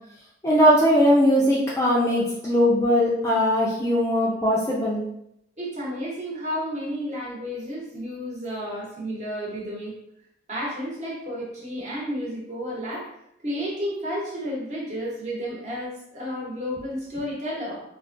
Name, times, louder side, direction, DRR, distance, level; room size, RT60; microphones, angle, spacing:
voice 1, 0.4-5.0, equal, 15° left, -5 dB, 0.4 m, -20 dB
voice 2, 5.6-9.9 10.5-13.1 13.4-17.8, equal, 40° right, -5 dB, 1.0 m, -31 dB
3.5 x 2.2 x 2.5 m, 0.78 s
head